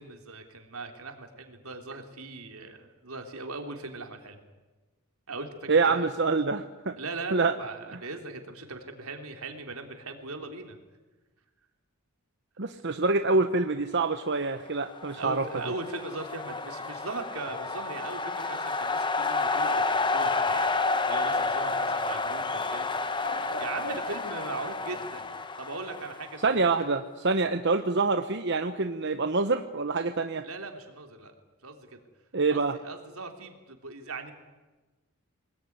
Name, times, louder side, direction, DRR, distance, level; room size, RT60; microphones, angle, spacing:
voice 1, 0.0-4.4 5.3-6.1 7.0-10.8 15.2-20.8 21.1-23.0 23.6-25.3 25.6-26.9 30.4-31.3 31.6-32.0 32.5-34.3, right 3 dB, 80° right, 4 dB, 3.5 m, -39 dB
voice 2, 5.7-7.0 7.3-7.5 12.6-15.4 26.4-30.4 32.3-32.8, right 3 dB, 55° right, 7 dB, 1.0 m, -26 dB
sound 1, 14.8-26.8, left 3 dB, 20° left, 1.1 m, -30 dB
Bird, 19.8-25.4, left 1 dB, 65° left, 4.4 m, -46 dB
25.0 x 20.0 x 9.5 m, 1.2 s
head